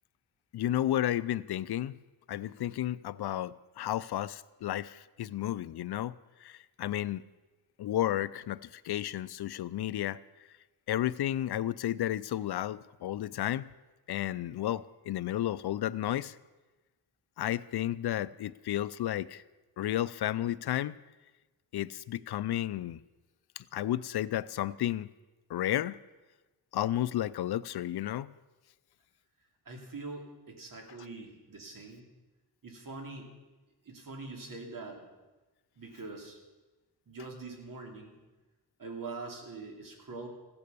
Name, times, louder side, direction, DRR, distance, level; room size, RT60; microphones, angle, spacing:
voice 1, 0.5-2.0 2.3-6.1 6.4-7.2 7.8-10.2 10.9-13.7 14.1-16.4 17.4-19.4 19.8-21.0 21.7-23.0 23.6-25.1 25.5-26.0 26.7-28.3, left 12 dB, 75° left, 18 dB, 0.5 m, -32 dB
voice 2, 29.7-32.0 32.6-33.3 33.9-35.0 35.8-36.4 37.1-38.2 38.8-40.3, right 3 dB, 55° right, 2 dB, 2.9 m, -43 dB
15.5 x 9.8 x 6.9 m, 1.2 s
wide cardioid pair, 130°, 39 cm